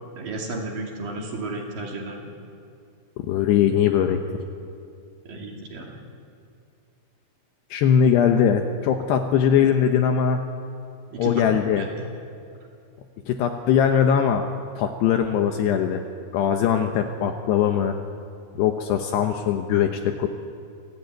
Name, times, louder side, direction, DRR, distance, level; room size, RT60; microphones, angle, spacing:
voice 1, 0.2-2.3 5.2-6.0 11.1-11.5 11.8-12.1, right 2 dB, 50° right, 0 dB, 3.9 m, -33 dB
voice 2, 3.2-4.2 7.7-10.5 11.2-11.9 13.3-14.5 14.8-16.0 16.3-18.0 18.6-20.3, left 8 dB, 75° left, 5 dB, 2.7 m, -21 dB
27.5 x 15.5 x 9.2 m, 2.5 s
omnidirectional pair, 5.7 m